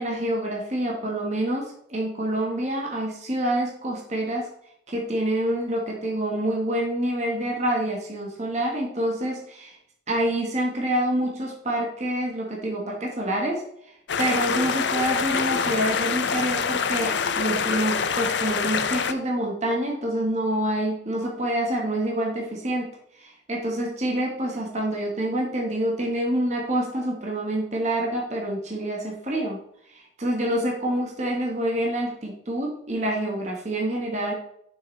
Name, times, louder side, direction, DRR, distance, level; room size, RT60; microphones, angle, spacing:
voice 1, 0.0-4.5 4.9-9.8 10.1-13.6 14.2-22.9 23.2-29.6 29.9-34.3, right 1 dB, 35° right, -1 dB, 1.3 m, -27 dB
sound 1, 14.1-19.1, left 6 dB, 65° left, 0.5 m, -25 dB
6.6 x 6.4 x 3.2 m, 0.71 s
head